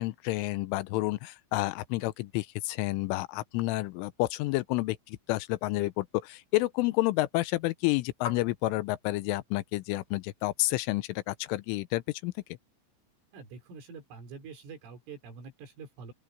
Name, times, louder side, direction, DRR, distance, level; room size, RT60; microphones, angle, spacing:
voice 1, 0.0-12.3, left 19 dB, 85° left, 3.2 m, -30 dB
sound 1, 5.2-11.0, left 8 dB, 30° left, 6.0 m, -49 dB
voice 2, 13.3-16.1, right 5 dB, 80° right, 7.1 m, -46 dB
open air
omnidirectional pair, 5.6 m